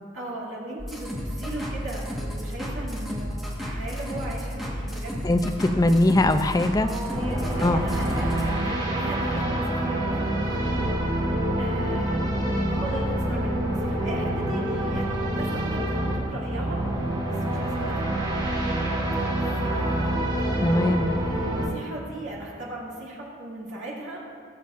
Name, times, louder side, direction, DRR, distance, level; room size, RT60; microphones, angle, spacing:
voice 1, 0.1-5.3 6.8-18.4 19.4-20.7 21.2-24.2, right 1 dB, 75° right, -5 dB, 2.4 m, -37 dB
sound 1, 0.8-8.5, equal, ahead, 1.4 m, -32 dB
voice 2, 5.2-6.9 7.6-7.9 20.6-21.0, left 1 dB, 20° left, 8 dB, 0.4 m, -21 dB
sound 2, 7.1-21.7, right 1 dB, 25° right, 2.2 m, -26 dB
19.0 x 7.0 x 2.5 m, 2.3 s
head